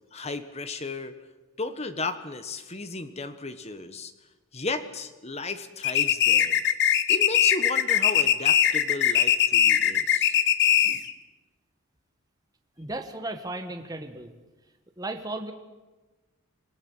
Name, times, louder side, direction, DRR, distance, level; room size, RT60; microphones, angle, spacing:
voice 1, 0.1-1.2 1.6-4.1 4.5-6.6 7.1-10.4, left 3 dB, 30° left, 10 dB, 1.3 m, -34 dB
sound 1, 5.8-11.1, left 10 dB, 50° left, 1.0 m, -21 dB
voice 2, 12.8-14.3 15.0-15.5, right 2 dB, 15° right, 5 dB, 1.4 m, -35 dB
26.0 x 17.5 x 8.0 m, 1.2 s
head